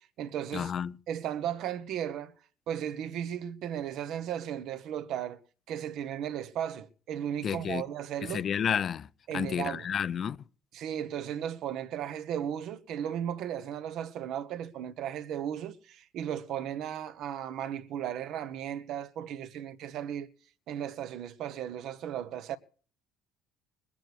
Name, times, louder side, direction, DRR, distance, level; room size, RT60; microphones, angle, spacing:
voice 1, 0.0-0.7 1.1-2.3 2.7-5.4 5.7-8.5 9.3-9.9 10.7-20.3 20.7-22.6, right 10 dB, 60° right, 1.3 m, -35 dB
voice 2, 0.5-0.9 7.4-7.8 8.3-9.1 9.3-10.4, left 8 dB, 40° left, 0.6 m, -30 dB
21.0 x 9.1 x 6.3 m
cardioid pair, 125°, 0 cm